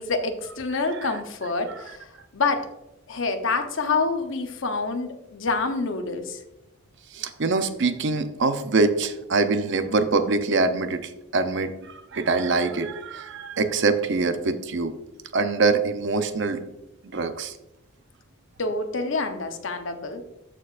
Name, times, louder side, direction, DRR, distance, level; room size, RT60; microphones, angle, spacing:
voice 1, 0.0-2.1 2.3-2.7 3.1-6.4 18.6-20.2, left 3 dB, 60° left, 6 dB, 0.8 m, -27 dB
voice 2, 7.1-14.9 15.3-16.7 17.1-17.5, right 3 dB, 55° right, 9 dB, 0.6 m, -24 dB
13.5 x 4.6 x 2.5 m, 0.93 s
head